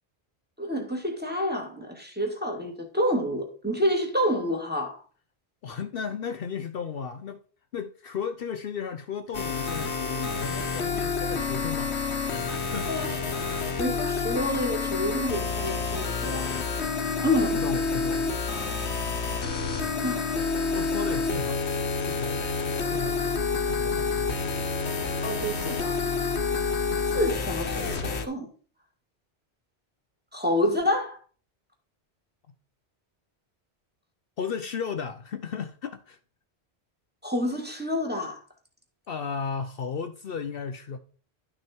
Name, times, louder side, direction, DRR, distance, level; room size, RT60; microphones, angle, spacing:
voice 1, 0.6-5.0 12.9-13.2 13.8-16.5 17.2-17.6 20.0-20.4 25.2-26.0 27.1-28.5 30.3-31.2 37.2-38.4, left 1 dB, 10° right, 2.0 m, -28 dB
voice 2, 5.6-7.4 7.7-12.9 17.2-18.3 18.6-18.7 20.7-24.7 25.4-25.5 34.4-36.2 39.1-41.0, left 6 dB, 65° left, 0.8 m, -35 dB
sound 1, 9.3-28.2, left 4 dB, 80° left, 1.5 m, -28 dB
11.5 x 6.1 x 4.4 m
omnidirectional pair, 1.1 m